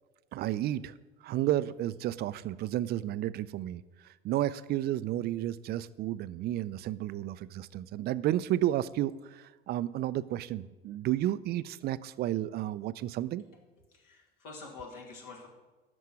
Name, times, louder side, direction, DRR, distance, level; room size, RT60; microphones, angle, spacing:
voice 1, 0.3-13.4, right 13 dB, 35° right, 16 dB, 0.4 m, -32 dB
voice 2, 13.9-15.5, left 4 dB, 65° left, 0 dB, 2.5 m, -46 dB
12.5 x 4.5 x 7.6 m, 1.2 s
figure-of-eight pair, 70°, 30 cm